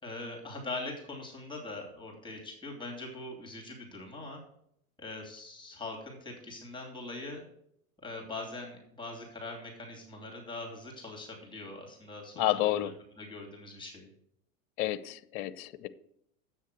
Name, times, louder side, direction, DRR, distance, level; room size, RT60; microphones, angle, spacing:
voice 1, 0.0-4.4 5.0-7.4 8.0-12.9 13.2-14.1, left 2 dB, 10° left, 0 dB, 2.8 m, -42 dB
voice 2, 12.4-12.9 14.8-15.9, left 14 dB, 45° left, 16 dB, 0.7 m, -30 dB
7.9 x 6.4 x 6.4 m, 0.73 s
hypercardioid pair, 90°, 43 cm